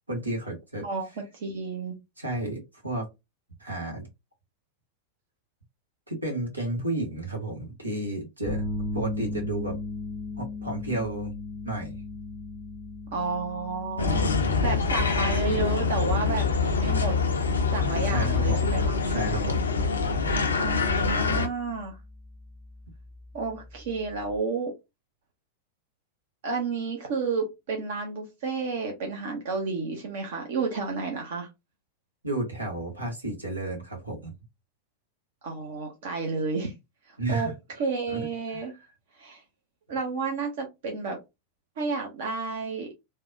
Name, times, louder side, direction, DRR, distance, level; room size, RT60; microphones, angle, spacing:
voice 1, 0.1-0.8 2.2-3.1 3.6-4.0 6.1-8.6 8.9-9.8 10.4-11.3 11.6-12.0 18.0-18.6 19.0-19.7 32.2-34.3 37.2-37.5 38.1-38.7, right 2 dB, 85° right, 0 dB, 1.1 m, -32 dB
voice 2, 0.8-1.9 13.1-14.3 14.6-17.1 17.7-18.9 20.6-22.0 23.3-24.7 26.4-31.5 35.4-36.7 37.1-37.5 37.8-38.7 39.1-39.4 39.9-41.2 41.8-42.9, right 4 dB, 55° right, 2 dB, 0.7 m, -31 dB
sound 1, 8.5-24.4, left 2 dB, 15° left, 0.6 m, -39 dB
sound 2, 14.0-21.5, left 4 dB, 75° left, 0.5 m, -25 dB
3.4 x 2.2 x 2.5 m, 0.22 s
figure-of-eight pair, 90°, 0 cm